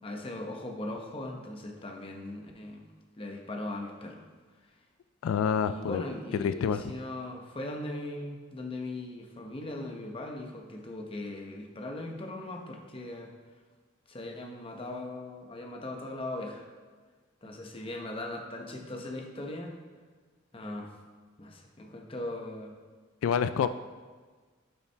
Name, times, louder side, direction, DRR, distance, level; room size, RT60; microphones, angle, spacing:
voice 1, 0.0-2.8 3.2-4.2 5.6-13.3 14.1-16.7 17.4-19.8 20.5-20.9 21.4-22.7, left 1 dB, 25° left, 2 dB, 0.8 m, -39 dB
voice 2, 5.2-6.0 6.3-6.9 23.2-23.7, left 7 dB, 90° left, 12 dB, 0.3 m, -27 dB
11.0 x 5.7 x 3.4 m, 1.5 s
head